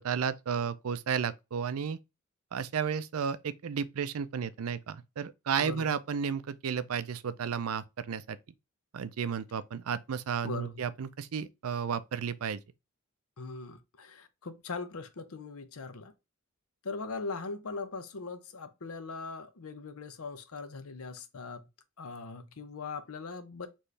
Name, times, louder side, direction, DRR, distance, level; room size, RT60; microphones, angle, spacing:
voice 1, 0.0-2.0 2.5-8.4 8.9-12.6, right 7 dB, 80° right, 0.5 m, -33 dB
voice 2, 10.4-10.9 13.4-16.1 16.8-21.7 22.0-23.7, left 4 dB, 80° left, 0.7 m, -40 dB
4.4 x 3.1 x 3.2 m
head